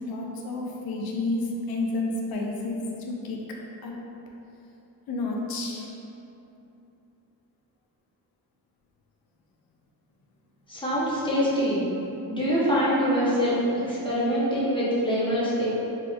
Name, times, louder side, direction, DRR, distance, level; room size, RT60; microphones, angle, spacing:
voice 1, 0.0-3.4 3.8-3.9 5.1-5.9, left 2 dB, 75° left, 0 dB, 0.5 m, -30 dB
voice 2, 10.7-11.8 12.3-13.6 13.9-15.7, equal, 15° left, -9 dB, 0.8 m, -24 dB
3.8 x 3.1 x 2.4 m, 2.9 s
wide cardioid pair, 140°, 37 cm